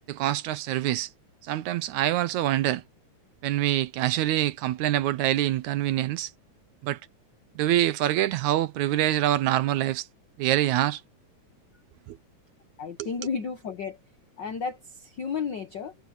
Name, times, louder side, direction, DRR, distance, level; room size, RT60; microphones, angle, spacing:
voice 1, 0.1-1.1 1.4-2.8 3.4-6.3 6.8-7.0 7.6-10.1 10.4-11.0 12.1-12.2 13.0-13.1, right 13 dB, 75° right, 2.1 m, -25 dB
voice 2, 12.8-14.0 14.4-15.9, left 6 dB, 70° left, 1.0 m, -33 dB
omnidirectional pair, 3.5 m